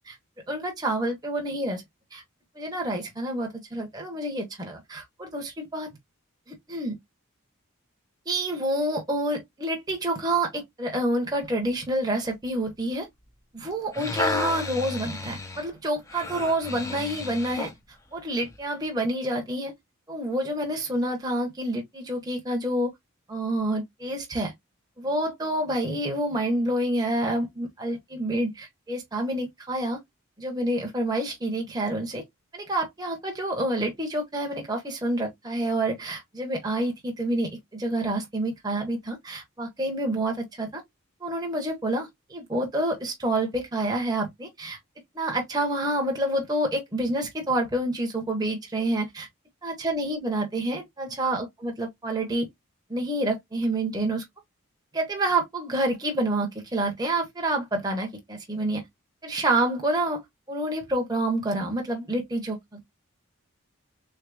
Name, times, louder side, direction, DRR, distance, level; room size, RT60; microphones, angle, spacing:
voice 1, 0.5-1.8 2.1-2.2 2.6-5.9 6.5-7.0 8.3-13.1 13.5-17.7 18.1-19.7 20.1-22.9 23.3-24.5 25.0-30.0 30.4-32.2 32.5-40.8 41.2-44.8 45.1-49.3 49.6-52.5 52.9-54.2 54.9-58.8 59.2-60.2 60.5-62.8, right 1 dB, 20° right, 0.9 m, -28 dB
sound 1, 13.7-17.8 18.4-18.6, left 3 dB, 15° left, 0.5 m, -32 dB
3.8 x 3.4 x 2.4 m
head